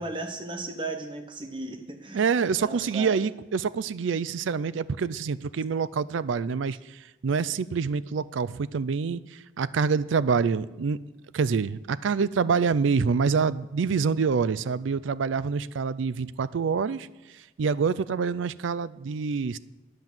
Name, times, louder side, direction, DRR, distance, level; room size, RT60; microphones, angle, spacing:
voice 1, 0.0-2.3 2.6-3.1, right 2 dB, 25° right, 6 dB, 1.1 m, -35 dB
voice 2, 2.1-11.0 11.3-17.1 17.3-19.6, right 5 dB, 85° right, 17 dB, 0.4 m, -26 dB
10.0 x 7.2 x 7.7 m, 1.1 s
head